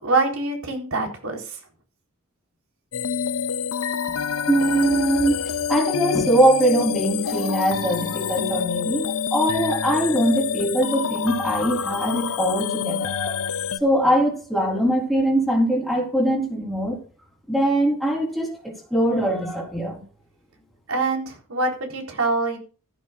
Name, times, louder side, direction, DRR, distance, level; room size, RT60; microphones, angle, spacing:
voice 1, 0.0-1.6 20.9-22.6, right 3 dB, 85° right, 4.0 m, -24 dB
sound 1, 2.9-13.8, left 7 dB, 90° left, 0.8 m, -27 dB
voice 2, 4.5-13.5 13.8-17.0 17.5-20.0, right 1 dB, ahead, 4.0 m, -22 dB
15.0 x 12.0 x 2.5 m
head